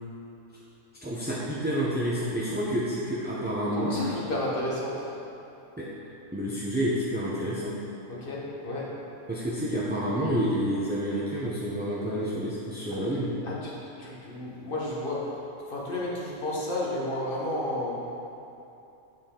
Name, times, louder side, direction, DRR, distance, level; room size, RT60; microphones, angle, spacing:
voice 1, 1.0-3.9 5.8-5.9 6.3-7.7 9.3-13.3, equal, 10° right, -7 dB, 0.5 m, -29 dB
voice 2, 3.7-5.1 8.1-9.0 12.9-13.0 13.4-15.4 15.7-18.1, left 1 dB, 40° left, -5 dB, 1.4 m, -32 dB
7.9 x 6.7 x 3.8 m, 2.9 s
omnidirectional pair, 1.4 m